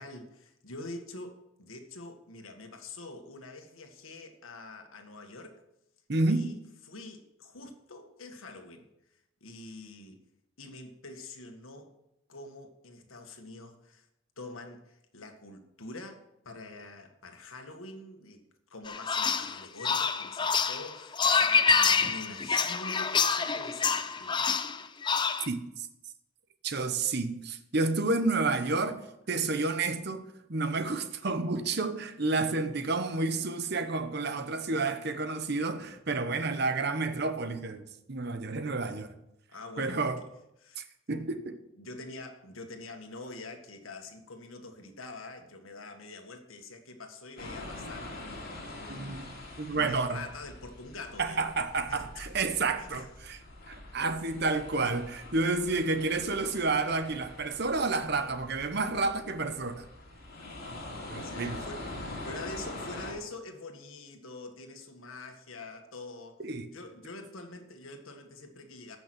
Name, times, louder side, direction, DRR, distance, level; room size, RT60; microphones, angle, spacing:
voice 1, 0.0-5.6 6.3-6.5 6.9-8.9 9.4-10.2 10.6-11.9 12.3-14.0 14.4-18.4 18.7-24.8 39.5-40.1 40.6-40.9 41.8-48.4 48.8-51.6 51.9-52.5 52.8-53.1 60.4-60.6 61.2-66.4 66.7-69.0, left 2 dB, 85° left, 1.7 m, -45 dB
voice 2, 6.1-6.5 25.5-25.9 26.6-29.0 29.3-37.8 38.1-39.1 39.8-40.2 40.8-41.6 48.9-49.3 49.6-50.2 51.2-53.4 53.7-59.9 61.1-61.6 66.4-66.7, right 3 dB, 50° right, 1.0 m, -30 dB
sound 1, 18.9-25.5, left 5 dB, 20° left, 0.5 m, -27 dB
sound 2, 47.4-63.1, left 2 dB, 45° left, 3.2 m, -44 dB
15.0 x 6.1 x 6.1 m
head